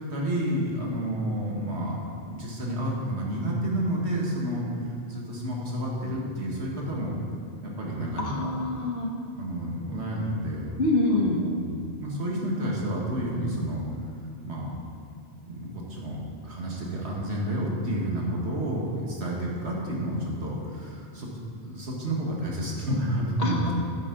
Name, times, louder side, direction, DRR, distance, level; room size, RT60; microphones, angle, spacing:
voice 1, 0.1-2.0 2.3-7.1 7.6-8.5 9.4-10.7 11.1-11.2 11.5-11.7 12.0-13.8 14.4-14.7 15.5-21.3 21.6-23.7, right 1 dB, 75° right, -3 dB, 2.0 m, -30 dB
voice 2, 8.2-9.1 10.8-11.4 23.4-23.7, left 2 dB, 65° left, 2 dB, 1.3 m, -25 dB
10.0 x 9.1 x 4.0 m, 2.4 s
omnidirectional pair, 1.1 m